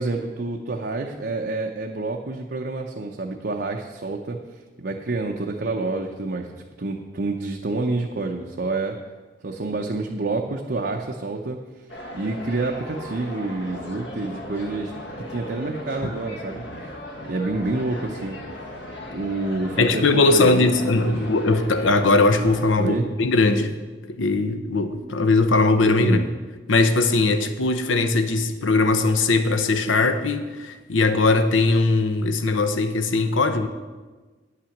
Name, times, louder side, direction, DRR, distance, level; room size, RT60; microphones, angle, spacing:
voice 1, 0.0-4.4 4.8-9.0 9.4-11.6 12.1-14.9 15.3-16.6 17.3-18.4 19.1-21.1 22.8-23.1 26.0-26.2, right 3 dB, 55° right, 1 dB, 0.6 m, -28 dB
sound 1, 11.9-22.7, left 1 dB, 65° left, 1.4 m, -37 dB
voice 2, 19.8-23.8 24.1-26.2 26.7-33.7, left 3 dB, 85° left, 9 dB, 0.8 m, -20 dB
9.6 x 5.8 x 7.1 m, 1.3 s
head